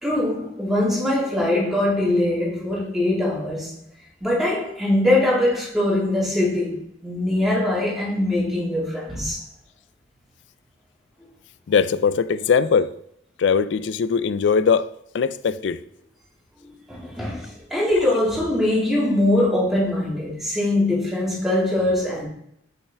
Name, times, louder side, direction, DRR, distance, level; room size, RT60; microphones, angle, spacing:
voice 1, 0.0-3.8 4.2-9.4 16.9-22.3, left 1 dB, ahead, 2.1 m, -22 dB
voice 2, 11.7-12.9 13.4-14.9 15.1-15.8, left 6 dB, 80° left, 0.4 m, -20 dB
6.4 x 5.6 x 3.4 m
head